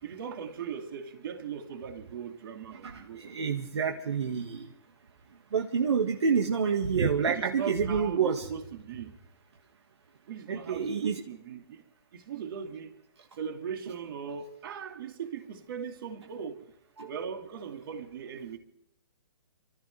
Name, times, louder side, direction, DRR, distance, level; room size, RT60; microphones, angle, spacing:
voice 1, 0.0-3.6 7.2-9.1 10.3-11.8 12.1-12.9 13.4-16.6 17.0-18.6, right 7 dB, 50° right, 2.8 m, -39 dB
voice 2, 2.7-4.7 5.5-8.5 10.5-11.2 17.0-17.2, right 6 dB, 75° right, 1.8 m, -28 dB
29.0 x 14.0 x 3.4 m
hypercardioid pair, 145°, 14 cm